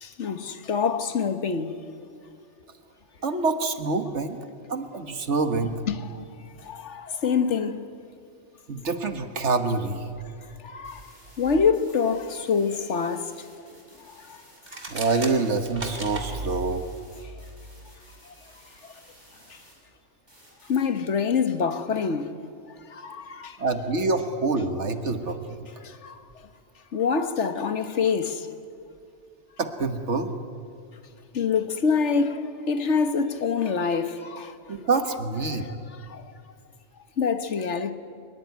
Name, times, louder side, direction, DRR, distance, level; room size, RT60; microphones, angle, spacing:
voice 1, 0.0-1.8 2.1-2.2 5.9-6.2 6.6-7.8 10.6-11.0 11.4-13.3 14.3-14.4 19.5-19.6 20.7-22.3 22.9-23.6 25.8-26.2 26.9-28.5 31.3-34.5 35.5-36.2 37.2-37.9, left 5 dB, 75° left, 1.6 m, -26 dB
voice 2, 3.2-4.4 4.7-5.8 8.7-10.1 14.9-16.9 23.6-25.7 29.6-30.3 34.7-35.7, right 3 dB, 75° right, 1.7 m, -26 dB
sound 1, 10.8-19.7 20.3-20.8, equal, 20° right, 7.2 m, -54 dB
sound 2, 14.6-16.3, right 2 dB, 50° right, 3.2 m, -36 dB
23.0 x 21.5 x 9.5 m
omnidirectional pair, 1.2 m